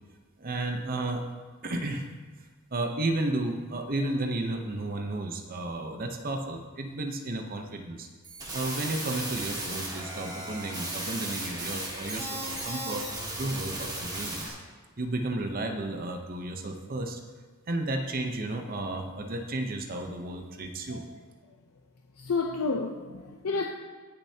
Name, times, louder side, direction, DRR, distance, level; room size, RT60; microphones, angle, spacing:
voice 1, 0.4-1.3 1.6-2.1 2.7-8.1 8.5-13.1 13.4-14.6 15.0-17.2 17.7-21.0, right 2 dB, 40° right, 0.8 m, -33 dB
sound 1, 8.2-14.5, right 1 dB, 20° right, 1.9 m, -35 dB
voice 2, 22.2-23.6, left 4 dB, 85° left, 0.6 m, -30 dB
18.5 x 6.7 x 2.8 m
head